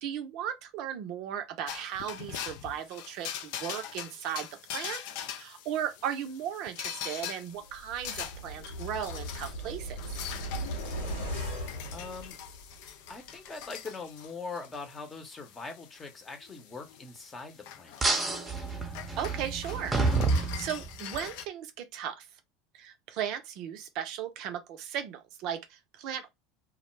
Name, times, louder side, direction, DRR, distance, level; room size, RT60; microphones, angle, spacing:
voice 1, 0.0-4.5 4.7-5.0 5.3-10.0 19.2-20.0 20.3-22.3 22.7-26.3, right 9 dB, 55° right, 0.4 m, -36 dB
sound 1, 1.7-21.4, left 9 dB, 65° left, 0.4 m, -43 dB
sound 2, 7.7-12.9 13.2-13.3, equal, 80° left, 0.9 m, -38 dB
voice 2, 11.9-12.4 13.1-18.0, left 4 dB, 25° left, 0.8 m, -42 dB
sound 3, 18.0-21.2, right 3 dB, 15° right, 0.7 m, -29 dB
2.3 x 2.0 x 3.1 m
hypercardioid pair, 75°, 0 cm